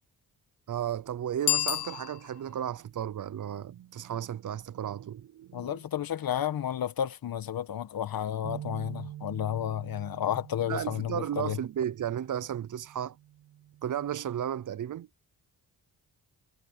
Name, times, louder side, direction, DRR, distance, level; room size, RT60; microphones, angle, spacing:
voice 1, 0.7-5.8 10.7-13.2 13.8-15.1, right 10 dB, 55° right, 0.7 m, -34 dB
Bicycle bell, 1.4-2.6, left 12 dB, 85° left, 1.0 m, -30 dB
voice 2, 5.5-11.6, left 10 dB, 65° left, 1.4 m, -32 dB
sound 1, 8.4-14.7, right 12 dB, 90° right, 2.8 m, -46 dB
cardioid pair, 90°, 38 cm